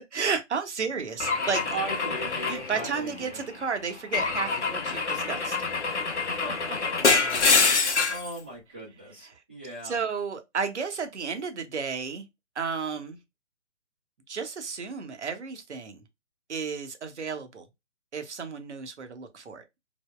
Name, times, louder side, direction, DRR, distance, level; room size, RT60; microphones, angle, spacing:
voice 1, 0.1-1.7 2.5-5.6 9.2-9.4 9.8-12.2 12.6-13.2 14.3-16.0 16.5-17.6 18.1-19.6, right 5 dB, 65° right, 0.7 m, -32 dB
Car / Engine / Glass, 1.2-3.4 4.1-8.3, left 4 dB, 65° left, 0.7 m, -26 dB
voice 2, 1.7-3.4 6.3-7.1 7.5-10.0, right 2 dB, 10° right, 0.5 m, -38 dB
3.4 x 2.1 x 2.2 m
figure-of-eight pair, 135°, 38 cm